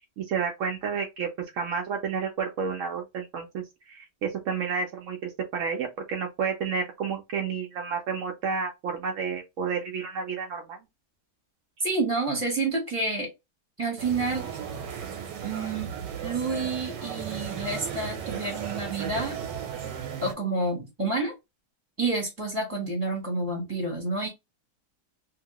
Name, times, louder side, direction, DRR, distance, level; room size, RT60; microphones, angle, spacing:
voice 1, 0.2-1.3 1.5-10.8, right 6 dB, 65° right, 0.8 m, -31 dB
voice 2, 11.8-13.3 13.8-14.5 15.4-15.9 16.2-19.3 20.2-21.3 22.0-24.3, right 3 dB, 10° right, 0.9 m, -29 dB
sound 1, 14.0-20.3, right 8 dB, 85° right, 1.4 m, -35 dB
2.8 x 2.7 x 2.9 m
omnidirectional pair, 1.8 m